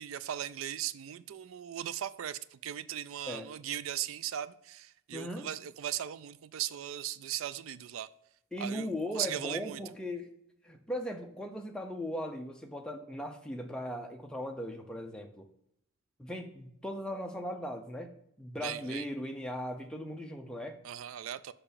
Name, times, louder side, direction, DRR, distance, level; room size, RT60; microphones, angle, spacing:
voice 1, 0.0-8.1 8.6-8.9 9.1-9.8 18.6-19.0 20.8-21.5, right 10 dB, 85° right, 0.4 m, -38 dB
voice 2, 5.1-5.5 8.5-10.3 10.6-15.5 16.2-20.8, equal, 5° left, 0.8 m, -38 dB
6.8 x 5.6 x 5.2 m
head